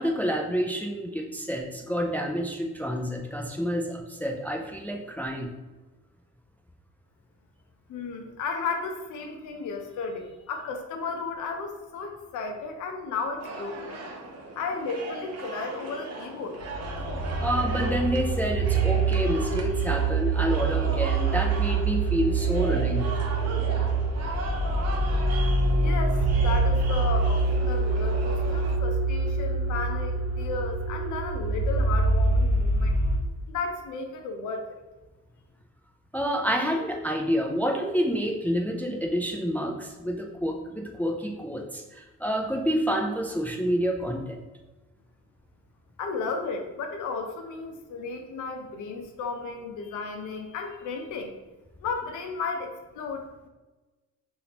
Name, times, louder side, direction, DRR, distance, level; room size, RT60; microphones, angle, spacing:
voice 1, 0.0-5.5 17.4-23.0 36.1-44.4, equal, 5° left, 1 dB, 0.4 m, -28 dB
voice 2, 7.9-14.0 14.6-16.6 25.8-33.0 33.5-34.8 46.0-51.3 51.8-53.5, left 4 dB, 80° left, 4 dB, 0.6 m, -34 dB
sound 1, 13.4-28.8, right 2 dB, 55° right, 0.8 m, -38 dB
sound 2, 16.6-33.2, right 3 dB, 30° right, 1.1 m, -25 dB
3.3 x 2.6 x 2.8 m, 1.2 s
cardioid pair, 90°, 30 cm